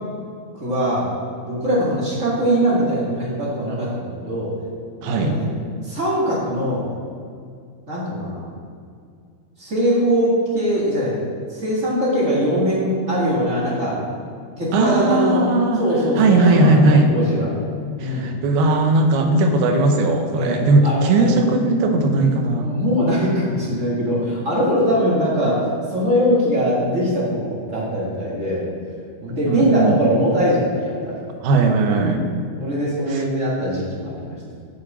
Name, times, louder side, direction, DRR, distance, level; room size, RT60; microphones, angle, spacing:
voice 1, 0.5-1.1 1.4-4.5 5.0-5.5 5.8-6.9 7.9-8.4 9.6-11.2 11.5-14.0 14.6-15.4 15.8-17.5 18.0-18.3 20.3-21.4 22.6-28.6 29.2-31.2 32.6-34.4, equal, 35° right, -6 dB, 1.2 m, -21 dB
voice 2, 5.0-5.4 14.7-15.8 16.2-17.1 18.0-22.7 29.5-30.0 31.4-32.2 33.1-33.2, right 2 dB, 85° right, 4 dB, 2.8 m, -18 dB
7.0 x 6.6 x 7.3 m, 2.2 s
omnidirectional pair, 4.4 m